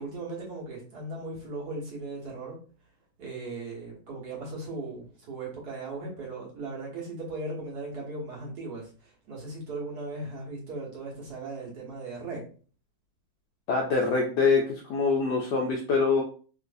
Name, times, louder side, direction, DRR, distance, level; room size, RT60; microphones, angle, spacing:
voice 1, 0.0-2.6 3.2-12.4, right 2 dB, 55° right, -3 dB, 1.5 m, -38 dB
voice 2, 13.7-16.2, left 4 dB, 75° left, 1 dB, 1.0 m, -24 dB
3.2 x 3.1 x 2.5 m, 0.40 s
omnidirectional pair, 2.3 m